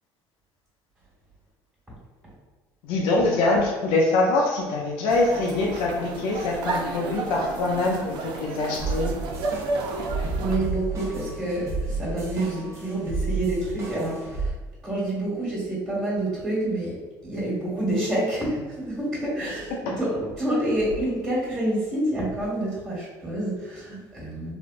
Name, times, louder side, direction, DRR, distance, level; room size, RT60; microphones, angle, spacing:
voice 1, 2.8-9.1 19.8-20.0, left 2 dB, 80° left, -2 dB, 0.5 m, -24 dB
sound 1, 5.1-10.6, right 3 dB, 65° right, 0.5 m, -32 dB
sound 2, 8.8-14.5, right 3 dB, 35° right, 0.8 m, -31 dB
voice 2, 10.4-14.5 14.8-17.0 17.2-24.5, right 1 dB, 10° right, -8 dB, 1.4 m, -28 dB
3.4 x 2.3 x 2.5 m, 1.3 s
supercardioid pair, 105°, 9 cm